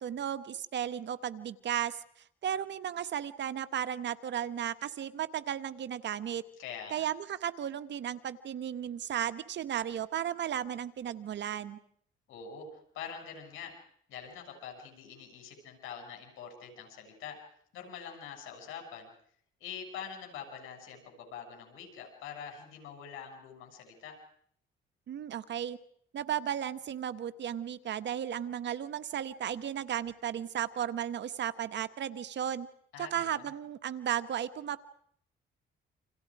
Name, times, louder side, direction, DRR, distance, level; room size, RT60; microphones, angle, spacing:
voice 1, 0.0-2.0 2.4-6.4 6.9-11.8 25.1-25.8 26.1-32.7 33.0-34.8, right 10 dB, 65° right, 12 dB, 1.5 m, -35 dB
voice 2, 6.6-7.1 12.3-13.7 14.1-17.4 17.7-19.1 19.6-24.2 32.9-33.5, left 7 dB, 90° left, 3 dB, 7.2 m, -45 dB
29.5 x 26.5 x 5.0 m, 0.66 s
cardioid pair, 90°, 20 cm